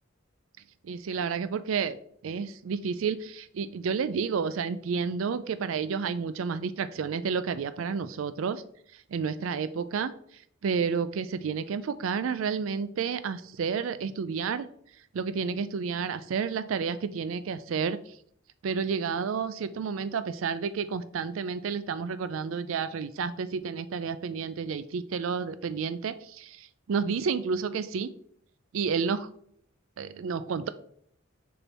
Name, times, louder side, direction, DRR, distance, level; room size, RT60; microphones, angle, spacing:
voice 1, 0.8-2.0 2.2-8.6 8.9-10.1 10.6-14.7 15.1-18.2 18.6-28.1 28.7-29.3 30.0-30.7, right 6 dB, 75° right, 13 dB, 0.4 m, -30 dB
6.7 x 4.4 x 4.2 m, 0.66 s
head